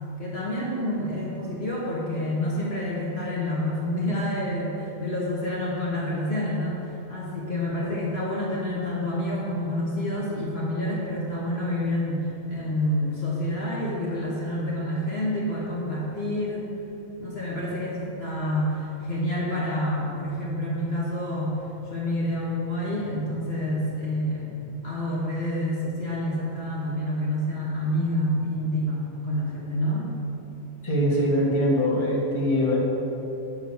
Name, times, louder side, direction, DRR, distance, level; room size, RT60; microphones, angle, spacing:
voice 1, 0.2-6.8 7.1-16.7 17.2-30.1, left 1 dB, 50° left, -6 dB, 1.4 m, -28 dB
voice 2, 30.8-32.8, equal, 20° left, -5 dB, 1.5 m, -22 dB
6.3 x 6.1 x 7.0 m, 2.9 s
omnidirectional pair, 1.4 m